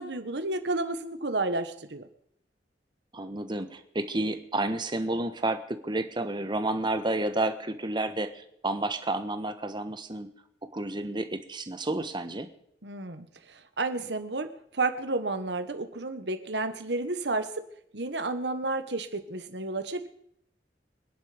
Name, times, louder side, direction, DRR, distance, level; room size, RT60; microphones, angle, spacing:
voice 1, 0.0-2.1 12.8-14.5 14.7-17.6 17.9-20.1, right 2 dB, 75° right, 9 dB, 1.5 m, -31 dB
voice 2, 3.1-10.3 10.7-12.5, right 2 dB, 25° right, 9 dB, 1.3 m, -30 dB
25.0 x 10.5 x 5.2 m, 0.70 s
head